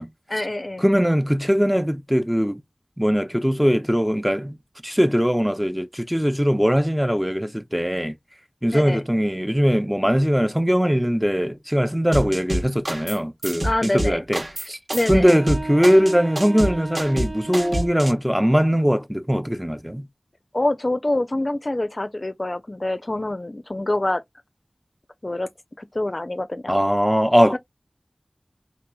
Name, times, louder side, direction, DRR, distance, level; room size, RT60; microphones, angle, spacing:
voice 1, 0.3-0.8 8.7-9.0 13.6-14.2 14.9-15.3 20.5-24.2 25.2-25.5 25.8-26.8 27.5-27.6, left 1 dB, 45° left, 0.4 m, -25 dB
voice 2, 0.8-2.6 3.0-4.6 4.8-8.1 8.6-14.8 15.1-20.1 26.7-27.6, equal, 5° right, 0.5 m, -20 dB
sound 1, 12.1-13.2 13.4-18.1, right 1 dB, 60° right, 1.2 m, -27 dB
sound 2, 15.2-18.2, right 2 dB, 85° right, 1.1 m, -35 dB
3.7 x 2.9 x 2.2 m
wide cardioid pair, 45°, 0 cm